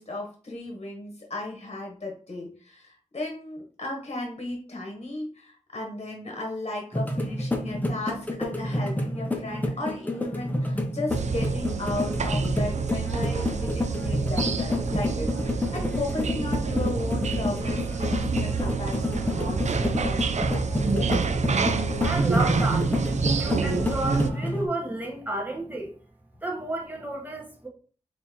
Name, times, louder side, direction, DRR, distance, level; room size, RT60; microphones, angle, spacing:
voice 1, 0.0-20.2 20.5-21.2, left 2 dB, 50° left, 1.1 m, -35 dB
sound 1, 6.9-24.7, left 1 dB, 15° left, 0.7 m, -29 dB
sound 2, 11.1-24.3, right 4 dB, 65° right, 0.4 m, -27 dB
voice 2, 22.0-25.9 26.4-27.7, right 2 dB, 15° right, 1.1 m, -32 dB
4.2 x 2.8 x 3.5 m
wide cardioid pair, 85°, 13 cm